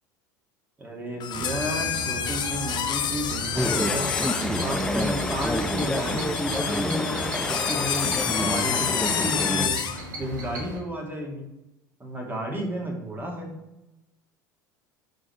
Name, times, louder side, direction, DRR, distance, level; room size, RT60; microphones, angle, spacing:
voice 1, 0.8-4.1 4.5-9.8 10.2-11.5 12.0-13.5, equal, 20° right, 0 dB, 2.4 m, -32 dB
sound 1, 1.2-10.0, left 9 dB, 45° left, 0.9 m, -29 dB
sound 2, 1.3-10.8, right 2 dB, 75° right, 1.6 m, -36 dB
Chatter / Stream, 3.5-9.7, left 1 dB, 5° left, 0.8 m, -28 dB
11.5 x 4.0 x 3.3 m, 0.94 s
hypercardioid pair, 75°, 11 cm